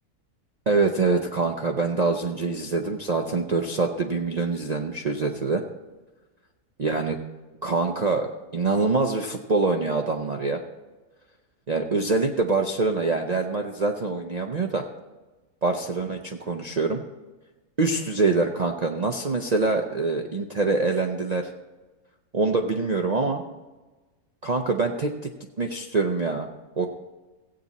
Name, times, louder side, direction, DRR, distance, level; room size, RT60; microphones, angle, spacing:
voice 1, 0.7-5.6 6.8-7.2 7.6-10.6 11.7-14.9 15.6-17.0 17.8-21.5 22.3-23.4 24.4-25.3 25.6-26.5 26.8-26.9, right 3 dB, 55° right, 2 dB, 0.4 m, -25 dB
16.0 x 8.5 x 4.0 m, 1.2 s
omnidirectional pair, 1.6 m